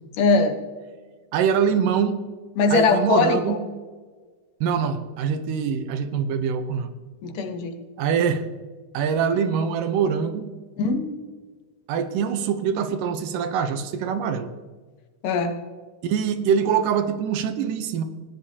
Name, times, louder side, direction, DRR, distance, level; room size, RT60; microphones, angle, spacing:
voice 1, 0.2-0.6 2.6-3.6 7.2-7.8 10.8-11.2 15.2-15.5, left 4 dB, 75° left, 6 dB, 2.7 m, -21 dB
voice 2, 1.3-2.2 2.7-3.6 4.6-6.9 8.0-8.4 8.9-10.5 11.9-14.5 16.0-18.0, right 7 dB, 80° right, 8 dB, 2.5 m, -24 dB
18.5 x 11.0 x 2.8 m, 1.5 s
omnidirectional pair, 3.8 m